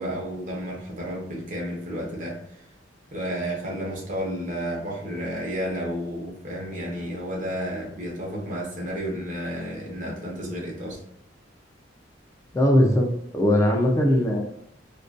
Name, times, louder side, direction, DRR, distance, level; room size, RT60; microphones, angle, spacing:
voice 1, 0.0-2.4 3.1-11.0, equal, 45° right, -2 dB, 0.8 m, -31 dB
voice 2, 12.5-14.4, left 1 dB, 15° left, -1 dB, 0.3 m, -20 dB
2.5 x 2.2 x 2.3 m, 0.77 s
head